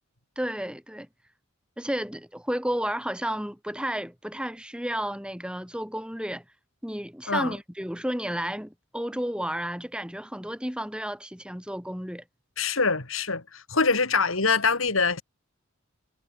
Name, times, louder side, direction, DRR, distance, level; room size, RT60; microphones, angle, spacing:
voice 1, 0.3-1.1 1.8-6.4 6.8-12.2, equal, 5° right, 5.0 m, -32 dB
voice 2, 12.6-15.2, left 4 dB, 80° left, 3.3 m, -24 dB
head